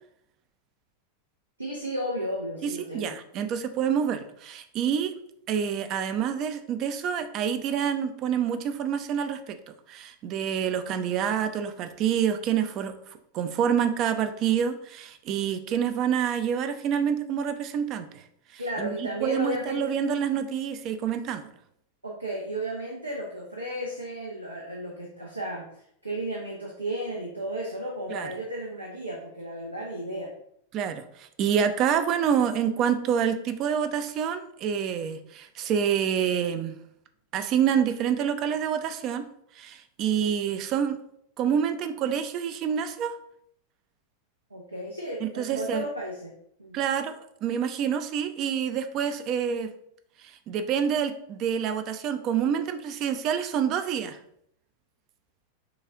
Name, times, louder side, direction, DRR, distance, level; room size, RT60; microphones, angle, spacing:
voice 1, 1.6-3.1 18.6-19.8 22.0-30.3 44.5-46.8, right 1 dB, 85° right, -3 dB, 0.7 m, -34 dB
voice 2, 2.6-5.1 5.5-9.6 9.9-12.9 13.3-18.2 18.5-21.5 28.1-28.3 30.7-36.8 37.3-39.3 39.6-41.0 41.4-43.1 45.2-45.8 46.7-47.1 47.4-49.7 50.5-54.2, right 8 dB, 35° right, 9 dB, 0.5 m, -27 dB
6.1 x 2.4 x 3.6 m, 0.72 s
figure-of-eight pair, 90°, 0 cm